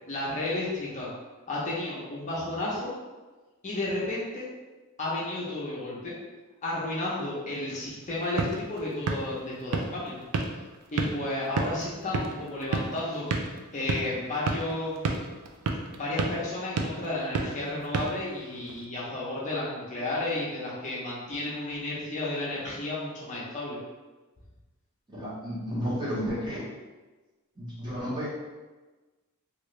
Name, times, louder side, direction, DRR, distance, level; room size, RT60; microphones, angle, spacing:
voice 1, 0.1-1.1 1.5-2.9 3.6-4.5 5.0-6.1 6.6-10.2 10.9-13.3 13.7-15.0 15.9-23.8, left 2 dB, 35° left, -6 dB, 0.7 m, -32 dB
sound 1, 8.0-18.8, right 3 dB, 80° right, 0.4 m, -33 dB
voice 2, 25.1-26.7 27.6-28.3, equal, 20° right, -8 dB, 0.9 m, -32 dB
3.1 x 2.5 x 3.1 m, 1.2 s
head